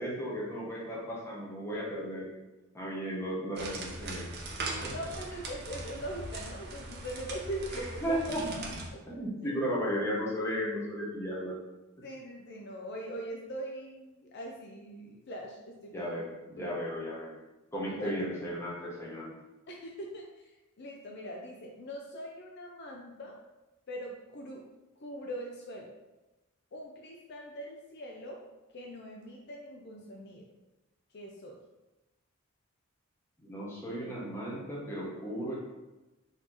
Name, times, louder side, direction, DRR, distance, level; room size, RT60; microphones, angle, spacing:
voice 1, 0.0-2.3 2.7-4.3 4.8-4.9 7.7-8.7 9.1-11.6 15.9-17.3 17.7-19.3 33.4-35.5, equal, 10° left, -6 dB, 1.1 m, -35 dB
sound 1, 3.6-8.9, right 2 dB, 50° right, 0.7 m, -40 dB
voice 2, 4.9-8.0 8.9-9.6 12.0-16.1 16.6-16.7 17.8-18.2 19.7-20.5 20.8-23.4 23.9-24.6 25.0-25.9 26.7-28.4 28.7-30.5 31.1-31.6, equal, 50° left, 0 dB, 0.5 m, -42 dB
4.1 x 3.0 x 4.0 m, 1.0 s
head